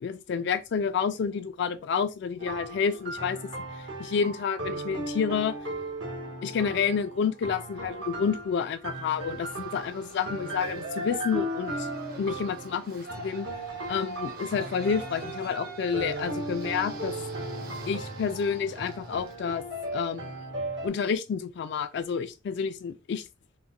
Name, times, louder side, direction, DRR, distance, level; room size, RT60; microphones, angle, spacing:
voice 1, 0.0-3.4 3.8-5.6 6.4-11.9 12.2-13.5 13.9-17.1 17.9-19.6 19.9-20.4 20.8-23.3, left 6 dB, 65° left, 0.3 m, -29 dB
sound 1, 2.4-20.9, right 1 dB, 80° right, 1.2 m, -37 dB
Yell, 9.2-19.4, right 1 dB, 50° right, 0.7 m, -41 dB
4.0 x 2.1 x 2.4 m
head